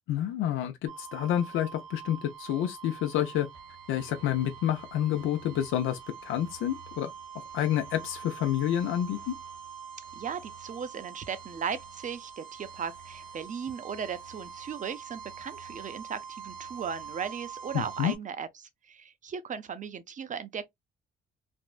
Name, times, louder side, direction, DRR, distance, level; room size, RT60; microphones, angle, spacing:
voice 1, 0.1-3.5 3.9-7.1 7.5-9.3 17.7-18.1, left 11 dB, 85° left, 0.5 m, -29 dB
sound 1, 0.9-18.2, right 7 dB, 80° right, 1.4 m, -45 dB
voice 2, 10.2-20.7, right 7 dB, 40° right, 0.6 m, -37 dB
3.4 x 2.0 x 2.4 m
cardioid pair, 90°, 20 cm